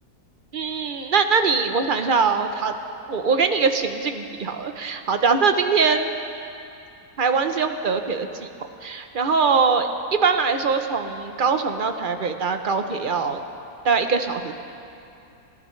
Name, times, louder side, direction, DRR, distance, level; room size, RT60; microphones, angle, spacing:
voice 1, 0.5-2.7 3.1-6.1 7.2-8.5 8.8-13.4 13.8-14.5, right 5 dB, 45° right, 7 dB, 0.7 m, -22 dB
29.5 x 13.5 x 3.2 m, 2.7 s
omnidirectional pair, 1.6 m